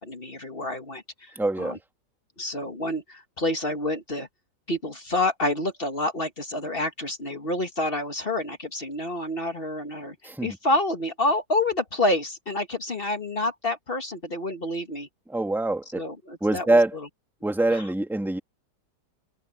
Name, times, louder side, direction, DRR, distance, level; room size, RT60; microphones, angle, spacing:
voice 1, 0.0-1.8 2.4-4.3 4.7-10.2 10.4-15.1 15.9-16.8 17.7-17.9, left 1 dB, 35° left, 1.8 m, -28 dB
voice 2, 1.4-1.8 10.2-10.6 15.3-16.0 16.4-16.9 17.4-18.4, right 2 dB, ahead, 1.8 m, -24 dB
omnidirectional pair, 1.8 m